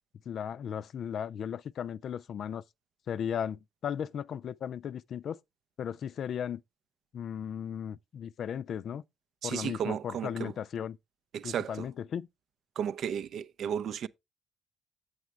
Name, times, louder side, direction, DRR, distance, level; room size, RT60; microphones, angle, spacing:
voice 1, 0.3-2.6 3.1-5.4 5.8-6.6 7.1-9.0 9.4-11.0 11.4-12.3, left 8 dB, 60° left, 0.4 m, -36 dB
voice 2, 9.4-10.5 11.3-11.9 12.8-14.1, right 8 dB, 60° right, 0.5 m, -34 dB
8.3 x 8.1 x 3.3 m
hypercardioid pair, 45°, 0 cm